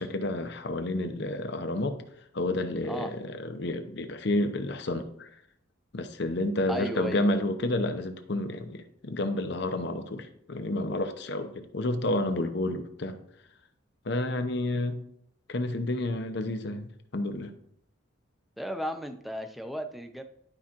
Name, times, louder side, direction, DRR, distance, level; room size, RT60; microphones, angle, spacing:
voice 1, 0.0-2.0 2.3-5.3 5.9-13.2 14.1-15.0 15.5-17.5, left 1 dB, 60° left, 7 dB, 0.8 m, -30 dB
voice 2, 6.7-7.2 18.6-20.2, equal, ahead, 6 dB, 0.6 m, -34 dB
11.5 x 4.9 x 2.9 m, 0.71 s
head